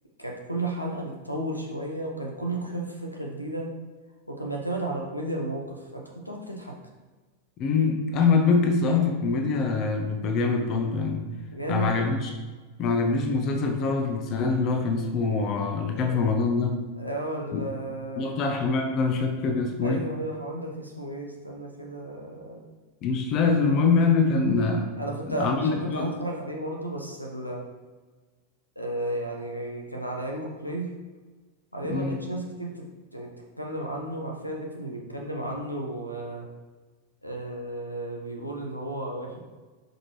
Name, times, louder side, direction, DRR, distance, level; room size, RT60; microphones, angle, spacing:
voice 1, 0.2-3.7 4.3-6.7 11.5-11.9 15.9-16.3 17.0-18.5 19.8-22.6 24.9-27.6 28.7-30.9 31.7-32.8 33.1-36.5 37.2-39.4, right 1 dB, 90° left, 0 dB, 1.1 m, -33 dB
voice 2, 7.6-11.3 11.7-12.3 12.8-16.8 17.5-17.7 18.2-20.0 23.0-24.9 25.3-26.1 31.9-32.2, left 4 dB, 35° left, 4 dB, 0.8 m, -24 dB
8.1 x 5.2 x 3.2 m, 1.3 s
figure-of-eight pair, 90°, 0 cm